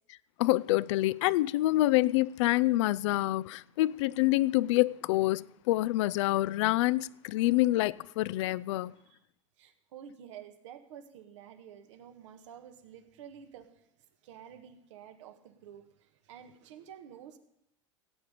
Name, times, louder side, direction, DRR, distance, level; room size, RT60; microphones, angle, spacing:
voice 1, 0.4-8.9, left 17 dB, 70° left, 0.4 m, -27 dB
voice 2, 9.6-13.9 14.2-17.4, right 9 dB, 75° right, 1.4 m, -50 dB
17.0 x 8.4 x 5.1 m
hypercardioid pair, 90°, 16 cm